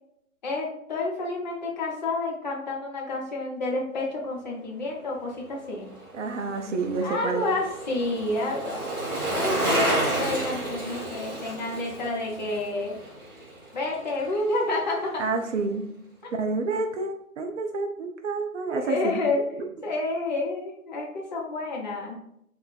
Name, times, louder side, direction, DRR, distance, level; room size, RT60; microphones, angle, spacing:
voice 1, 0.4-5.9 7.0-8.8 9.1-13.0 13.7-15.3 16.2-16.3 18.7-19.4 19.8-22.2, left 2 dB, 30° left, -2 dB, 0.6 m, -29 dB
Bicycle, 5.8-14.2 14.5-14.6, right 1 dB, 15° right, 0.7 m, -31 dB
voice 2, 6.1-7.5 15.2-15.9 16.3-19.2, right 3 dB, 55° right, 4 dB, 0.5 m, -29 dB
2.5 x 2.3 x 3.7 m, 0.74 s
figure-of-eight pair, 135°, 44 cm